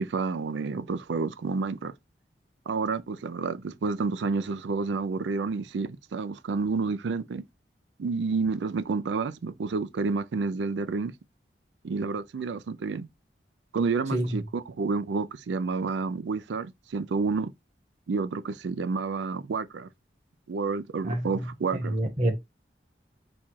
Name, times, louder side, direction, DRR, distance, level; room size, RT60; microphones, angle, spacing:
voice 1, 0.0-1.9 2.7-7.4 8.0-11.1 11.8-13.1 13.7-17.5 18.1-19.9 20.5-22.0, right 4 dB, 85° right, 0.4 m, -29 dB
voice 2, 21.0-22.3, right 1 dB, 40° right, 1.3 m, -28 dB
4.3 x 2.4 x 4.4 m
head